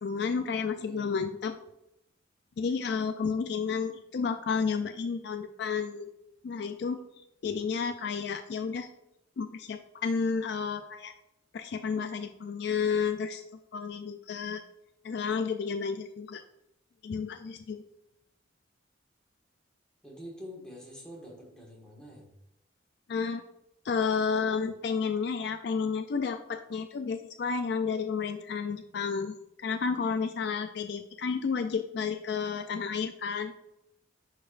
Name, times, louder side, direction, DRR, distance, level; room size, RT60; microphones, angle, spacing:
voice 1, 0.0-1.6 2.6-6.1 6.4-7.0 7.4-8.9 9.4-11.1 11.5-13.4 13.7-14.6 15.0-16.4 17.0-17.8 23.1-23.4 23.8-33.6, left 5 dB, 55° left, 8 dB, 0.3 m, -31 dB
voice 2, 0.7-1.1 20.0-22.3, equal, 5° left, -3 dB, 1.6 m, -46 dB
10.0 x 4.4 x 2.5 m, 0.84 s
head